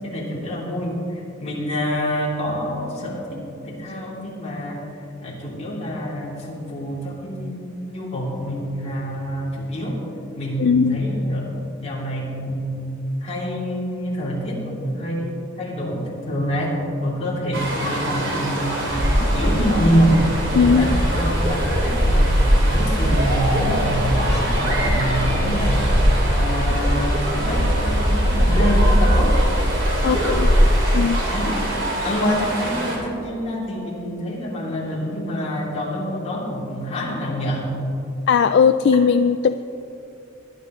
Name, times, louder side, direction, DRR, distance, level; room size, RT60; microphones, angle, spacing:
voice 1, 0.0-10.0 10.3-12.8 13.2-20.3 20.5-22.4 22.7-29.4 30.0-30.3 30.7-30.8 31.3-31.6 32.0-37.7, equal, 30° left, -5 dB, 3.0 m, -26 dB
voice 2, 10.6-11.0 20.6-21.0 30.0-30.5 30.9-31.2 38.3-39.6, left 6 dB, 55° left, 10 dB, 0.3 m, -18 dB
sound 1, 17.5-33.0, right 1 dB, 60° right, 2.8 m, -27 dB
sound 2, 18.9-30.6, equal, 25° right, 1.6 m, -20 dB
20.5 x 11.5 x 3.1 m, 2.8 s
head